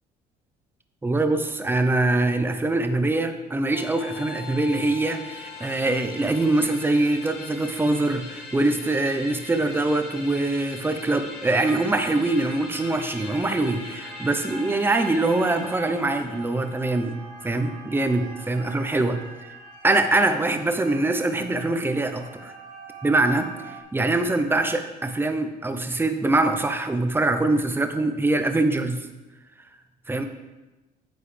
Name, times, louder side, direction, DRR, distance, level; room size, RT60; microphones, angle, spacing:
voice 1, 1.0-17.2 17.4-19.2 19.8-22.5 23.0-23.5 23.9-29.0 30.1-30.2, right 2 dB, 15° right, 7 dB, 0.8 m, -23 dB
sound 1, 3.7-16.8, left 3 dB, 85° left, 2.1 m, -41 dB
sound 2, 11.5-23.8, right 3 dB, 60° right, 2.1 m, -43 dB
9.5 x 7.9 x 3.4 m, 1.1 s
cardioid pair, 110°, 17 cm